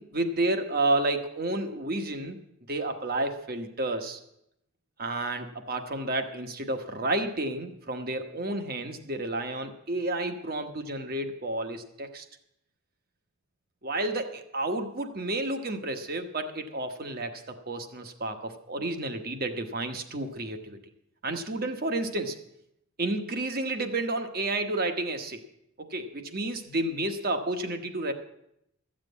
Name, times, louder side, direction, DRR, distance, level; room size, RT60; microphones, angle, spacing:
voice 1, 0.0-2.4 2.7-4.2 5.0-12.2 13.8-20.8 21.2-22.4 23.0-25.4 25.8-28.1, right 2 dB, 45° right, 7 dB, 1.2 m, -31 dB
13.5 x 7.5 x 8.4 m, 0.79 s
head